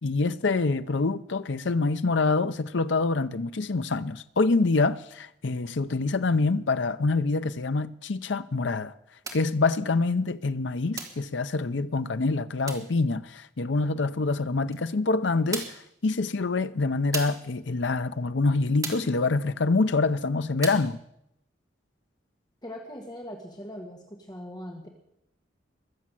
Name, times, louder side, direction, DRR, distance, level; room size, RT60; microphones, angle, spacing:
voice 1, 0.0-8.9 9.3-21.0, left 3 dB, 70° left, 0.6 m, -26 dB
sound 1, 9.2-9.5 11.0-11.3 12.7-12.9 14.7-14.8 15.5-15.9 17.1-17.5 18.8-19.2 20.6-20.9, right 4 dB, 20° right, 1.7 m, -36 dB
voice 2, 22.6-24.9, equal, 20° left, 1.7 m, -40 dB
22.0 x 7.4 x 7.6 m
head